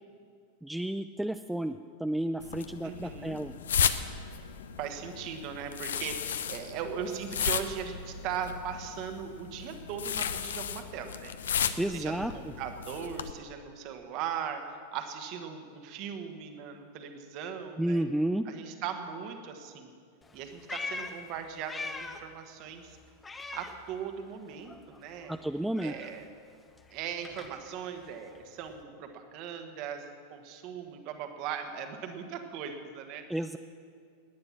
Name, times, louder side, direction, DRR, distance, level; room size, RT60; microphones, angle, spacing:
voice 1, 0.6-3.6 11.8-12.3 17.8-18.5 25.3-26.0 33.3-33.6, right 1 dB, 5° right, 9 dB, 0.4 m, -31 dB
sound 1, 2.4-13.3, left 8 dB, 65° left, 0.6 m, -34 dB
voice 2, 2.8-3.4 4.8-11.3 11.9-14.6 14.9-18.0 18.4-19.9 20.3-23.0 23.5-25.3 25.8-26.3 26.9-33.2, right 8 dB, 40° right, 6 dB, 1.5 m, -39 dB
Meow, 20.2-22.4 22.7-24.4 24.6-28.8, left 3 dB, 15° left, 1.0 m, -43 dB
19.5 x 9.6 x 6.1 m, 2.2 s
figure-of-eight pair, 90°, 0 cm